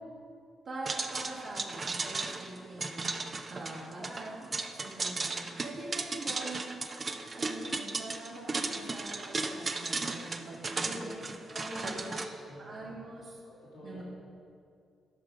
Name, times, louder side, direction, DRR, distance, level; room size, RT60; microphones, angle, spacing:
voice 1, 0.6-3.1 3.5-4.5 4.8-6.8 7.0-11.2 11.8-12.1 12.6-13.4 13.8-14.0, right 2 dB, 65° right, -11 dB, 2.4 m, -43 dB
sound 1, 0.9-12.3, right 3 dB, 45° right, 0.8 m, -36 dB
voice 2, 10.8-11.2 11.5-12.8 13.4-14.0, equal, 80° left, -7 dB, 2.4 m, -44 dB
11.5 x 6.0 x 5.2 m, 2.5 s
hypercardioid pair, 40°, 0 cm